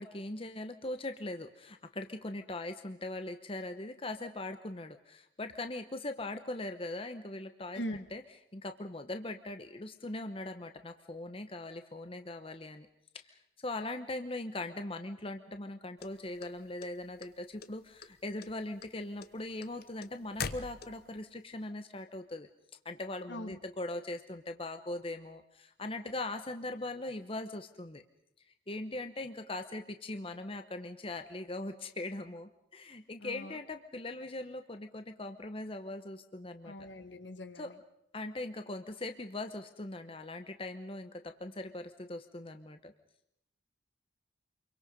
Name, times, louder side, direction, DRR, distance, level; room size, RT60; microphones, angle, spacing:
voice 1, 0.0-8.2 8.5-12.9 13.2-22.5 22.8-28.0 28.7-36.7 37.5-37.7 38.1-42.9, left 2 dB, 30° left, 7 dB, 1.0 m, -40 dB
sound 1, 16.0-17.3 17.6-18.1 18.4-21.2, left 5 dB, 55° left, 1.0 m, -41 dB
voice 2, 33.2-33.6 36.7-37.7, equal, 75° left, 9 dB, 1.7 m, -41 dB
27.5 x 23.0 x 5.3 m, 0.76 s
head